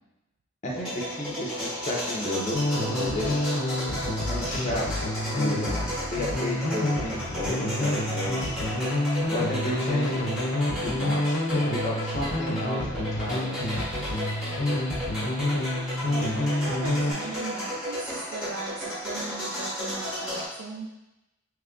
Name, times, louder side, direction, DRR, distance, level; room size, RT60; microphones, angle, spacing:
voice 1, 0.6-3.5 4.2-5.9 6.1-8.6 9.3-10.3 10.8-13.6, left 1 dB, 35° left, -3 dB, 0.6 m, -33 dB
sound 1, 0.8-20.5, equal, ahead, 1.0 m, -34 dB
sound 2, 2.5-17.1, left 1 dB, 80° left, 0.6 m, -28 dB
voice 2, 16.1-20.9, right 3 dB, 70° right, 1 dB, 0.3 m, -38 dB
3.0 x 2.4 x 3.6 m, 0.97 s
head